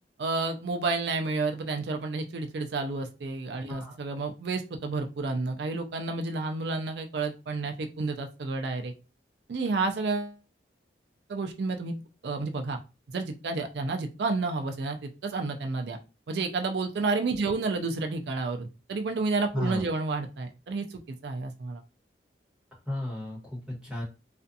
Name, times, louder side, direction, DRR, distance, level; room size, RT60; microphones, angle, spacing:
voice 1, 0.2-8.9 9.5-10.4 11.3-11.9 12.2-12.8 13.1-16.0 16.3-21.8, right 3 dB, 65° right, 5 dB, 0.4 m, -30 dB
voice 2, 19.5-19.9 22.9-24.0, left 1 dB, 5° right, -4 dB, 1.1 m, -34 dB
2.4 x 2.3 x 2.6 m, 0.29 s
head